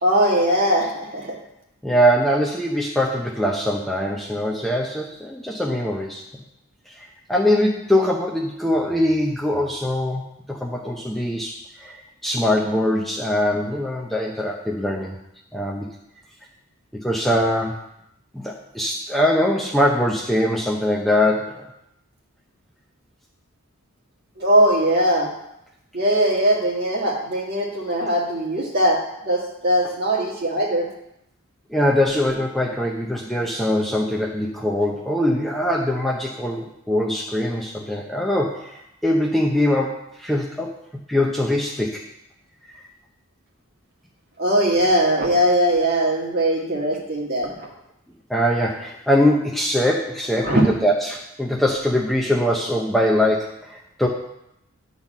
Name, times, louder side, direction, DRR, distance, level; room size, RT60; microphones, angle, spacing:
voice 1, 0.0-1.3 24.4-25.3 25.9-30.9 44.4-47.7 50.4-50.6, right 1 dB, 45° right, -2 dB, 2.1 m, -20 dB
voice 2, 1.8-6.2 6.9-10.2 10.5-15.2 15.5-15.9 16.9-17.8 18.3-21.6 31.7-40.7 41.1-42.0 48.3-54.1, left 1 dB, ahead, -1 dB, 0.7 m, -22 dB
10.5 x 4.1 x 7.2 m, 0.81 s
head